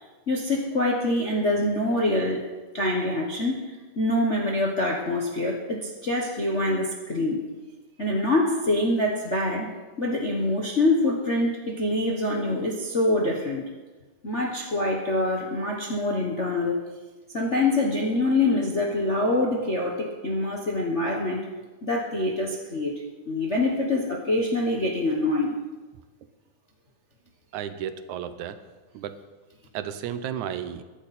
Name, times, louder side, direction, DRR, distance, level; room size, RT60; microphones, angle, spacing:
voice 1, 0.3-2.4 2.7-3.6 3.9-7.4 8.0-9.7 10.0-13.6 14.2-16.8 17.3-21.4 21.8-22.9 23.3-25.5, left 2 dB, 45° left, -1 dB, 0.9 m, -25 dB
voice 2, 27.5-28.6 28.9-29.1 29.7-30.8, right 9 dB, 80° right, 11 dB, 2.2 m, -33 dB
22.5 x 11.0 x 4.3 m, 1.3 s
omnidirectional pair, 3.4 m